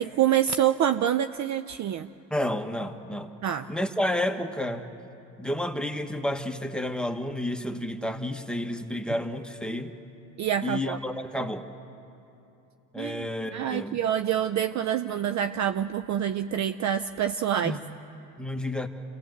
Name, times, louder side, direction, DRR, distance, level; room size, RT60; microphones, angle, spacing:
voice 1, 0.0-2.1 3.4-3.7 10.4-11.0 13.0-17.8, right 10 dB, 35° right, 11 dB, 0.6 m, -26 dB
voice 2, 2.3-3.3 3.7-4.8 5.4-9.9 10.6-11.7 12.9-14.0 17.6-17.8 18.4-18.9, left 1 dB, ahead, 5 dB, 1.4 m, -30 dB
27.0 x 18.0 x 7.9 m, 2.8 s
hypercardioid pair, 85°, 47 cm